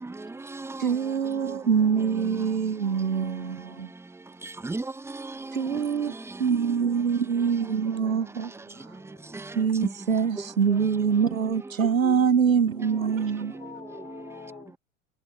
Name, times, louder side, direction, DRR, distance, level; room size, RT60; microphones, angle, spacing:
voice 1, 0.0-0.9 2.2-2.5 3.2-3.3 4.4-5.8 9.3-9.6 9.8-9.9 11.2-11.3 12.0-12.1 13.5-13.7, right 3 dB, 5° right, 1.1 m, -36 dB
voice 2, 0.8-3.9 5.5-6.1 6.4-8.5 9.6-13.6, right 6 dB, 90° right, 0.6 m, -24 dB
voice 3, 8.7-9.4 12.7-13.1 13.5-14.7, left 6 dB, 15° left, 0.9 m, -47 dB
figure-of-eight pair, 80°, 39 cm